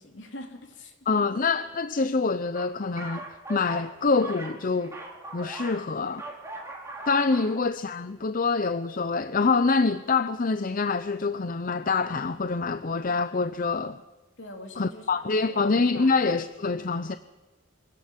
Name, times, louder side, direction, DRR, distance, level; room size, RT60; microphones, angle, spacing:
voice 1, 0.0-1.0 14.4-15.6 15.9-16.2, left 1 dB, 60° left, 3.6 m, -43 dB
voice 2, 1.1-3.2 3.5-5.0 5.3-6.2 7.1-14.0 14.8-17.2, left 4 dB, 45° left, 0.6 m, -25 dB
sound 1, 2.5-5.8 6.1-7.6, right 2 dB, 15° right, 4.0 m, -40 dB
24.5 x 17.0 x 7.4 m
head